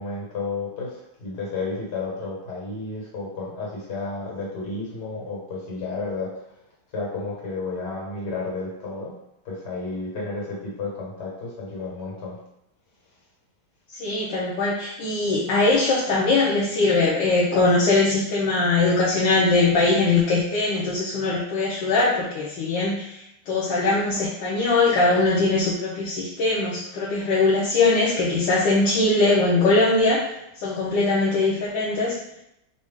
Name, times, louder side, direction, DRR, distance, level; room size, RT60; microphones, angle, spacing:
voice 1, 0.0-6.6 6.9-9.1 9.5-12.4, left 3 dB, 55° left, -4 dB, 1.9 m, -32 dB
voice 2, 13.9-32.2, left 3 dB, 70° left, -5 dB, 1.3 m, -21 dB
5.3 x 2.6 x 3.5 m, 0.83 s
omnidirectional pair, 2.2 m